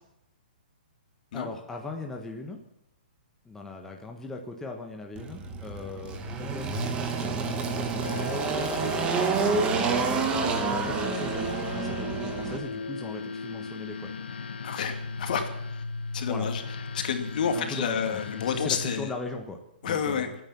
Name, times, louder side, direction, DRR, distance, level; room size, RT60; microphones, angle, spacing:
voice 1, 1.3-2.6 3.4-14.1 16.3-16.5 17.5-20.3, left 2 dB, 5° left, 2 dB, 1.4 m, -40 dB
Engine, 5.2-12.6, right 5 dB, 20° right, 1.8 m, -28 dB
sound 1, 8.0-19.0, left 4 dB, 85° left, 1.2 m, -36 dB
voice 2, 14.6-15.5 16.1-16.6 16.9-19.1 19.8-20.3, left 7 dB, 55° left, 6 dB, 2.7 m, -29 dB
24.5 x 9.4 x 6.1 m, 0.83 s
hypercardioid pair, 155°, 5 cm